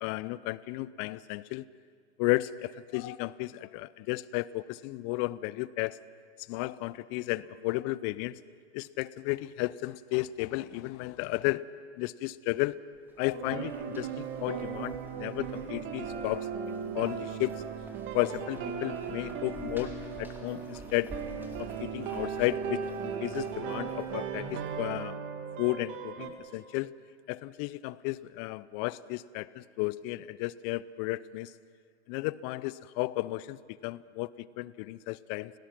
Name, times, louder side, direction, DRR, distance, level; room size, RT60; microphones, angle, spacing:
voice 1, 0.0-1.6 2.2-6.0 6.5-8.4 8.7-11.6 12.0-12.8 13.2-16.5 16.9-17.5 18.1-19.9 20.2-21.1 21.6-25.2 25.6-26.9 27.3-31.5 32.1-34.3 34.6-35.5, left 19 dB, 35° left, 19 dB, 0.6 m, -33 dB
sound 1, 13.0-25.1, right 1 dB, 5° right, 2.9 m, -51 dB
sound 2, 13.3-26.3, right 7 dB, 35° right, 2.2 m, -37 dB
29.5 x 18.0 x 6.0 m, 2.1 s
hypercardioid pair, 105°, 34 cm